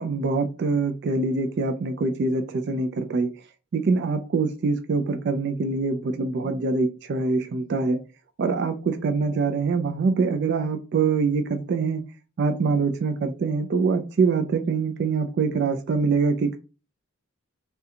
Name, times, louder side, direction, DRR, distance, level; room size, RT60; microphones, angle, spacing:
voice 1, 0.0-3.3 3.7-8.0 8.4-12.0 12.4-16.6, right 4 dB, 50° right, 7 dB, 0.3 m, -24 dB
2.4 x 2.1 x 2.7 m, 0.32 s
head